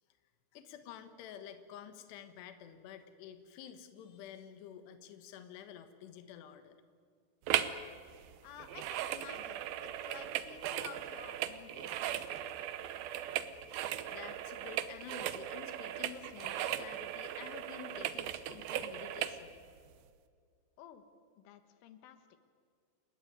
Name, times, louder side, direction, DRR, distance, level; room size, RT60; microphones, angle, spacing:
voice 1, 0.5-6.8 14.1-19.6, left 9 dB, 70° left, 9 dB, 3.3 m, -50 dB
sound 1, 7.5-7.8 8.1-19.4 19.9-20.0, right 11 dB, 75° right, 2.2 m, -38 dB
voice 2, 8.4-12.2 20.8-21.0 21.4-22.2, left 9 dB, 85° left, 9 dB, 3.8 m, -52 dB
28.5 x 17.0 x 9.5 m, 2.1 s
omnidirectional pair, 5.5 m